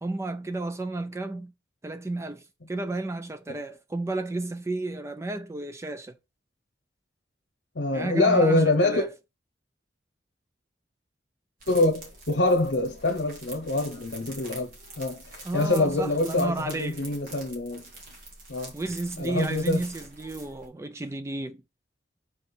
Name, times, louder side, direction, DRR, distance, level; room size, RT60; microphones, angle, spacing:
voice 1, 0.0-1.5 1.8-6.2 7.9-9.1 15.4-17.0 18.7-21.6, right 2 dB, 15° right, 0.3 m, -32 dB
voice 2, 7.7-9.0 11.7-17.8 18.5-18.7 19.2-19.8, left 2 dB, 70° left, 0.9 m, -25 dB
sound 1, 11.6-20.7, right 2 dB, 50° right, 2.1 m, -46 dB
5.0 x 4.3 x 4.3 m
head